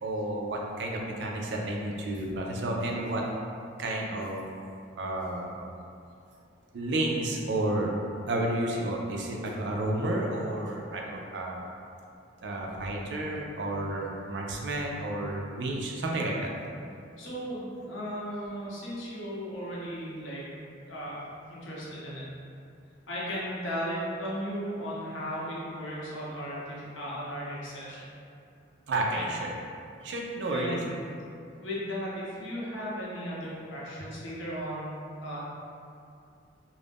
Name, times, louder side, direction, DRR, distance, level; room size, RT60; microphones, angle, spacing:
voice 1, 0.0-3.2 3.8-4.4 5.0-5.6 6.7-7.9 8.3-11.6 12.4-16.5 28.9-29.5 30.0-30.8, right 1 dB, 65° right, -1 dB, 0.4 m, -31 dB
voice 2, 17.2-20.4 20.9-21.2 21.5-22.3 23.1-28.1 29.1-29.3 30.5-31.1 31.6-35.4, equal, 85° left, -6 dB, 0.7 m, -36 dB
2.4 x 2.0 x 3.4 m, 2.5 s
head